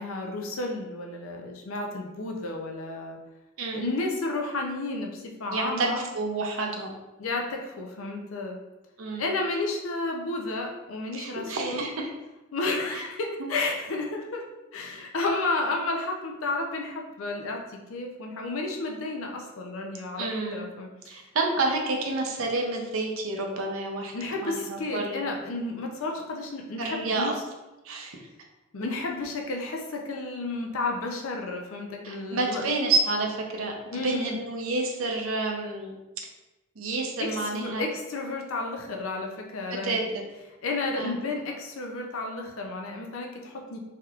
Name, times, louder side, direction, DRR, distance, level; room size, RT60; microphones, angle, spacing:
voice 1, 0.0-3.2 3.7-6.0 7.2-8.6 9.2-11.9 12.5-14.4 14.7-21.2 24.1-27.3 28.7-32.7 33.9-34.4 37.2-40.0 40.6-43.8, left 2 dB, 70° left, 1 dB, 0.5 m, -32 dB
voice 2, 3.6-3.9 5.5-6.9 9.0-9.3 11.1-12.1 12.9-13.0 13.4-13.5 20.2-20.7 21.1-24.1 24.4-25.2 26.8-27.3 27.8-28.2 32.0-35.9 36.8-37.8 39.7-40.0 41.0-41.1, right 3 dB, 70° right, 1 dB, 0.6 m, -29 dB
3.3 x 2.9 x 2.4 m, 1.1 s
head